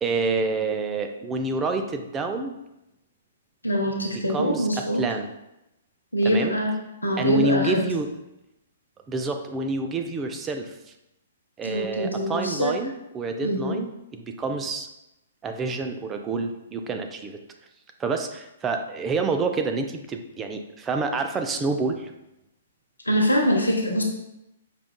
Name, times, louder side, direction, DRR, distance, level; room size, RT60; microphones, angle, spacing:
voice 1, 0.0-2.5 4.3-5.3 6.2-6.6 7.2-8.1 9.1-10.8 11.6-14.9 15.4-17.4 18.0-22.1, right 3 dB, 20° right, 5 dB, 0.3 m, -28 dB
voice 2, 3.6-5.0 6.1-6.7 7.0-7.8 11.6-12.8 13.4-13.8 23.1-24.0, equal, 90° left, 1 dB, 0.6 m, -24 dB
4.9 x 2.3 x 2.2 m, 0.89 s
figure-of-eight pair, 120°, 0 cm